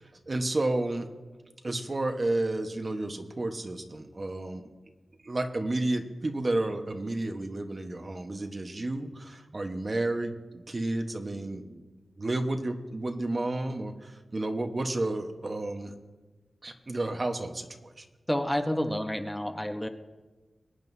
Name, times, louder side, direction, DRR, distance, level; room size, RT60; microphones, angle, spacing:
voice 1, 0.3-1.1 1.6-4.7 5.2-11.8 12.2-15.9 16.6-18.1, right 2 dB, 45° right, 5 dB, 1.2 m, -31 dB
voice 2, 18.3-19.9, left 1 dB, 10° left, 6 dB, 0.9 m, -29 dB
23.0 x 9.0 x 2.7 m, 1.2 s
cardioid pair, 55°, 0 cm